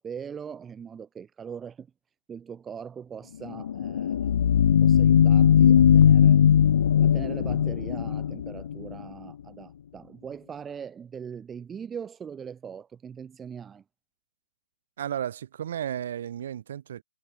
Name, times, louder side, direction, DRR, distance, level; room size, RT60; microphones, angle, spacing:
voice 1, 0.0-1.9 2.3-4.4 4.8-6.4 7.0-13.8, right 7 dB, 10° right, 2.6 m, -41 dB
sound 1, 3.5-9.0, left 9 dB, 45° left, 1.2 m, -19 dB
voice 2, 15.0-17.0, right 10 dB, 40° right, 7.8 m, -33 dB
hypercardioid pair, 160°, 0 cm